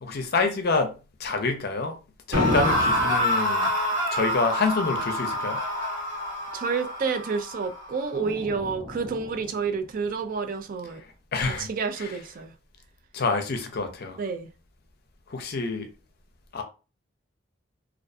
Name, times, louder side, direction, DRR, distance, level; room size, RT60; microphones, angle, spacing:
voice 1, 0.0-0.9 1.2-2.0 2.3-3.7 4.1-5.6 11.3-11.7 12.0-12.1 13.1-14.2 15.3-15.9 16.5-16.6, left 4 dB, 55° left, 0.5 m, -27 dB
sound 1, 2.3-9.4, left 1 dB, 75° right, 1.1 m, -27 dB
voice 2, 6.5-11.0 11.5-12.5 14.2-14.5, right 5 dB, 45° right, 0.3 m, -29 dB
2.5 x 2.3 x 2.2 m
head